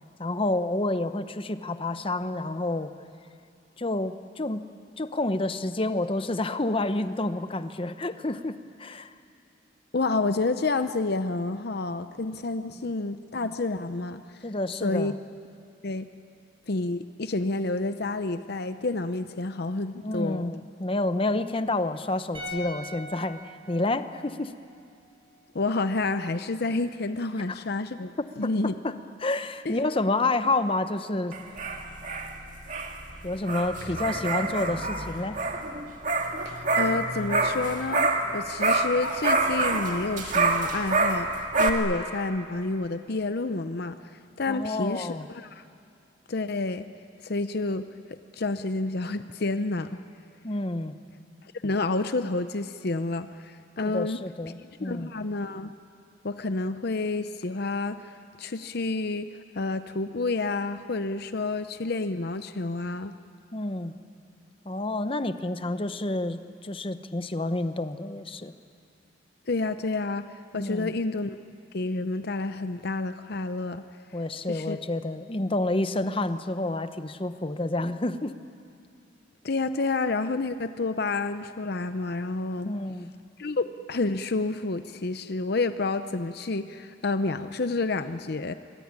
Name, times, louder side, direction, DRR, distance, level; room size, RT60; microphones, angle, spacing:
voice 1, 0.2-2.9 3.8-4.6 5.0-9.1 14.4-15.1 20.0-23.4 23.7-24.5 27.5-27.6 28.2-31.4 33.2-35.4 44.5-45.3 50.4-50.9 53.8-55.1 63.5-63.9 64.6-68.5 70.5-70.9 74.1-78.4 82.7-83.1, left 2 dB, 30° left, 10 dB, 0.9 m, -29 dB
voice 2, 9.9-14.2 14.8-15.1 15.8-16.1 16.7-20.5 25.5-28.1 28.4-28.7 29.7-29.8 36.5-41.3 41.6-44.0 44.4-45.6 46.3-46.9 47.2-47.9 48.3-50.0 51.6-54.2 54.8-55.7 56.2-63.1 69.5-71.4 71.7-73.8 74.5-74.8 79.4-82.7 83.4-88.5, left 3 dB, 55° left, 10 dB, 0.7 m, -29 dB
sound 1, 22.3-25.6 25.8-26.0, left 1 dB, 25° right, 6.5 m, -43 dB
sound 2, 31.3-38.3 38.6-41.7, right 3 dB, 45° right, 2.1 m, -27 dB
25.5 x 23.0 x 9.7 m, 2.4 s
head